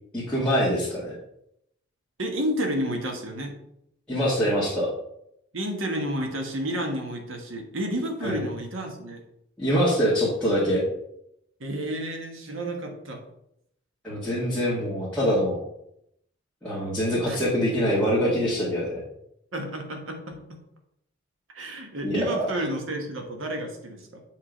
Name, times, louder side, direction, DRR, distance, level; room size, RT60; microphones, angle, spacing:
voice 1, 0.1-1.1 4.1-4.9 8.2-8.4 9.6-10.8 14.0-15.6 16.6-19.0 22.0-22.5, equal, 5° left, -10 dB, 1.7 m, -24 dB
voice 2, 2.2-3.6 5.5-9.2 11.6-13.2 17.3-17.4 19.5-20.5 21.5-24.2, right 1 dB, 70° right, 3 dB, 1.4 m, -31 dB
7.6 x 3.8 x 5.0 m, 0.76 s
head